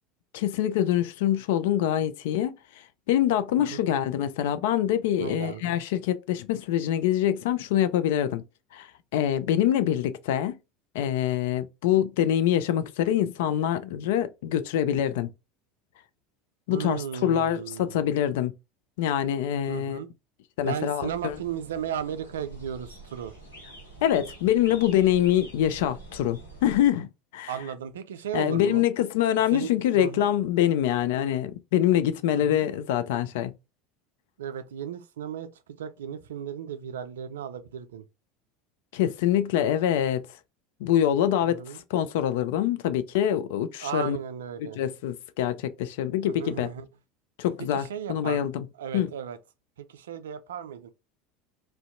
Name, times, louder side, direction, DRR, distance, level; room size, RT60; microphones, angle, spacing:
voice 1, 0.3-2.5 3.1-8.4 8.7-10.6 10.9-15.3 16.7-18.5 19.0-20.0 20.6-21.4 24.0-27.1 27.3-27.5 28.3-33.5 38.9-40.2 40.8-41.6 41.9-44.2 44.6-46.7 47.4-48.6 48.9-49.1, left 11 dB, 65° left, 0.3 m, -25 dB
voice 2, 5.2-5.8 16.7-18.0 19.7-20.1 20.6-23.3 27.5-28.8 29.5-30.3 32.3-32.7 34.4-35.5 35.8-38.0 41.4-41.8 43.8-44.8 46.2-46.9 47.7-48.5 48.8-49.4 49.9-50.9, right 8 dB, 75° right, 0.3 m, -35 dB
sound 1, 21.0-26.9, right 2 dB, 85° left, 0.8 m, -46 dB
2.5 x 2.2 x 2.4 m
hypercardioid pair, 75°, 0 cm